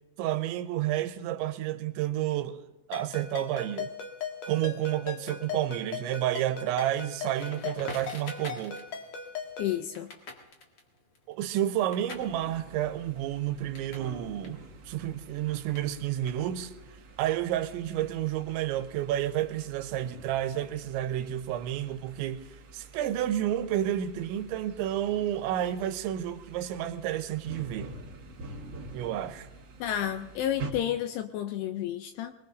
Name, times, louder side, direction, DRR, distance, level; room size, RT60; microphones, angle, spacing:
voice 1, 0.2-2.6 2.9-3.9 4.5-8.8 11.3-16.7 17.2-22.4 22.7-27.9 28.9-29.5, right 12 dB, 90° right, 3.1 m, -30 dB
Ringtone, 2.9-9.8, left 6 dB, 65° left, 1.7 m, -39 dB
Crackle, 7.4-14.1 14.4-16.8, left 3 dB, 45° left, 1.9 m, -47 dB
voice 2, 9.6-10.1 29.8-32.4, left 11 dB, 80° left, 2.3 m, -31 dB
sound 1, 12.1-30.7, right 3 dB, 70° right, 1.5 m, -47 dB
24.5 x 21.0 x 2.6 m
omnidirectional pair, 5.2 m